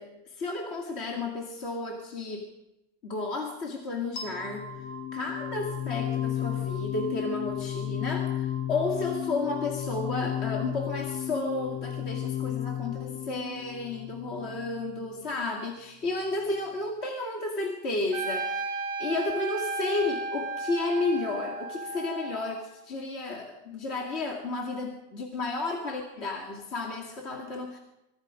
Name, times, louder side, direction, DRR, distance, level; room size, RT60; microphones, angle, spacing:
voice 1, 0.0-2.5 3.0-4.7 5.1-27.8, left 3 dB, 25° left, 0 dB, 2.3 m, -32 dB
sound 1, 4.2-15.1, left 10 dB, 50° left, 2.9 m, -33 dB
Trumpet, 18.1-22.8, right 3 dB, 55° right, 2.8 m, -34 dB
25.0 x 24.5 x 5.2 m, 0.96 s
omnidirectional pair, 3.5 m